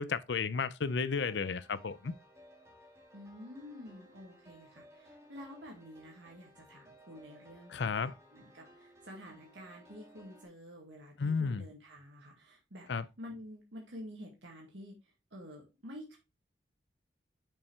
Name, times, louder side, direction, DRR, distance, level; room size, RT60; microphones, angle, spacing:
voice 1, 0.0-2.1 7.7-8.1 11.2-11.6 12.9-13.0, left 5 dB, 75° left, 0.5 m, -33 dB
sound 1, 0.9-10.5, equal, 15° right, 1.8 m, -59 dB
voice 2, 3.1-12.9 13.2-16.2, equal, 80° right, 2.1 m, -49 dB
6.8 x 5.8 x 3.3 m
head